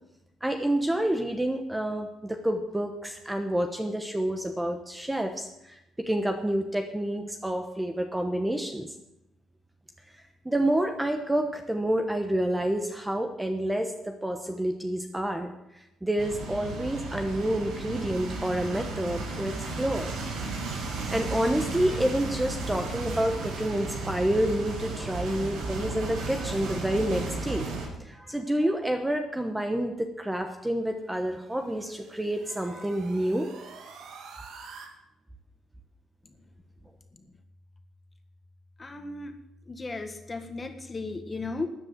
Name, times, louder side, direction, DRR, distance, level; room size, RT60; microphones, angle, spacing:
voice 1, 0.4-8.9 10.4-20.2 21.1-27.7 28.0-33.5, right 1 dB, 10° right, 5 dB, 1.1 m, -28 dB
sound 1, 16.2-27.9, right 3 dB, 90° right, 5.7 m, -34 dB
sound 2, 30.9-34.9, right 5 dB, 70° right, 2.6 m, -48 dB
voice 2, 36.8-37.4 38.8-39.4 39.7-41.7, left 3 dB, 20° left, 7 dB, 1.7 m, -36 dB
13.5 x 9.8 x 8.0 m, 0.89 s
cardioid pair, 140°, 0 cm